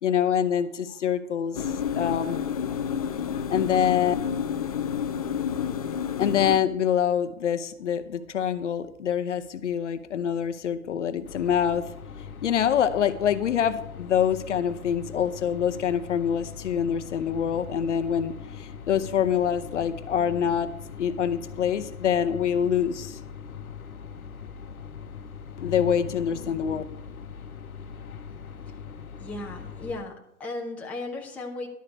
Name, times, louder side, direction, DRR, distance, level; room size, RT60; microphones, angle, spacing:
voice 1, 0.0-2.4 3.5-4.1 6.2-11.9 12.4-20.7 21.0-23.2 25.6-26.8, left 8 dB, 55° left, 10 dB, 0.8 m, -25 dB
sound 1, 1.5-6.6, left 8 dB, 25° left, 0.5 m, -29 dB
sound 2, 11.2-30.0, left 6 dB, 75° left, 1.1 m, -41 dB
voice 2, 29.2-31.7, left 2 dB, 5° left, -1 dB, 0.9 m, -36 dB
11.5 x 4.9 x 8.1 m, 0.75 s
hypercardioid pair, 140°, 43 cm